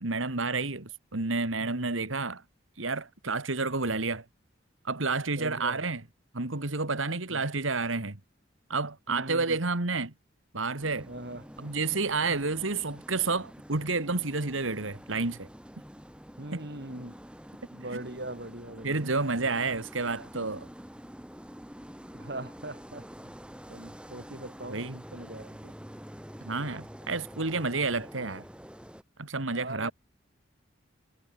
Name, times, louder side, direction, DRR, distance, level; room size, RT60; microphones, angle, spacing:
voice 1, 0.0-2.4 2.8-4.2 4.8-6.0 6.3-8.2 8.7-10.1 10.5-11.1 11.6-15.5 16.5-16.6 18.8-20.7 24.7-25.0 26.4-28.4 29.2-29.9, right 3 dB, 90° right, 2.2 m, -30 dB
voice 2, 1.6-1.9 5.4-5.8 7.3-7.4 9.1-9.6 11.1-11.4 16.4-17.1 17.7-19.1 22.1-23.3 23.7-25.7 29.5-29.9, right 1 dB, 55° right, 4.1 m, -41 dB
sound 1, 10.8-29.0, equal, 5° right, 3.9 m, -47 dB
head